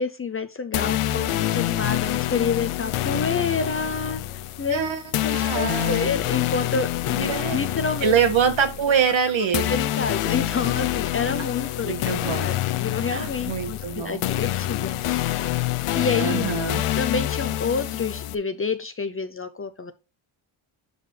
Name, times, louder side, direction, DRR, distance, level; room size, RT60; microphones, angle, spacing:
voice 1, 0.0-4.2 4.6-4.8 5.2-8.1 9.7-15.3 15.9-16.4 16.9-19.9, left 5 dB, 30° left, 0.5 m, -28 dB
sound 1, 0.7-18.3, left 13 dB, 90° left, 0.7 m, -27 dB
voice 2, 4.7-5.0 5.3-6.1 7.2-7.6 8.0-9.7 11.8-12.5 13.1-14.2 16.2-16.8, right 7 dB, 65° right, 1.9 m, -24 dB
12.0 x 4.1 x 3.3 m
wide cardioid pair, 150°, 49 cm